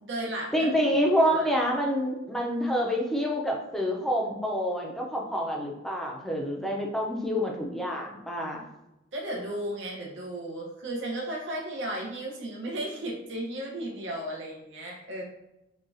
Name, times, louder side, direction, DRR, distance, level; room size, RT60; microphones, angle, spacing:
voice 1, 0.0-0.9 1.3-1.5 9.1-15.2, right 1 dB, 60° right, -2 dB, 1.0 m, -35 dB
voice 2, 0.5-8.6, equal, ahead, -1 dB, 0.6 m, -27 dB
6.3 x 2.4 x 2.7 m, 0.92 s
head